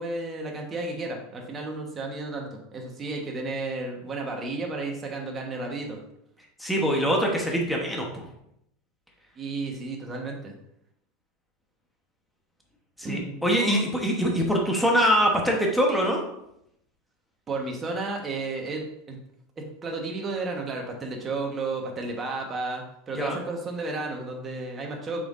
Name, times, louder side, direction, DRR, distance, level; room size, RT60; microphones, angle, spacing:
voice 1, 0.0-6.0 9.4-10.5 13.0-13.8 17.5-19.2 19.6-25.2, right 3 dB, 20° right, 0 dB, 1.2 m, -33 dB
voice 2, 6.6-8.2 13.0-16.2 23.2-23.4, equal, ahead, -1 dB, 1.1 m, -23 dB
6.8 x 5.5 x 2.6 m, 0.78 s
supercardioid pair, 150°, 0 cm